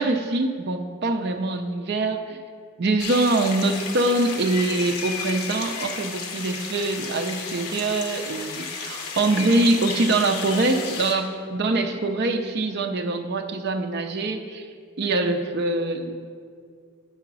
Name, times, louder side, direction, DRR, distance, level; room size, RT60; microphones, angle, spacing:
voice 1, 0.0-2.4 2.8-14.7 15.0-16.1, right 2 dB, 45° right, 6 dB, 0.5 m, -24 dB
sound 1, 3.0-11.1, left 5 dB, 80° left, 0.9 m, -33 dB
7.1 x 4.8 x 6.0 m, 2.1 s
head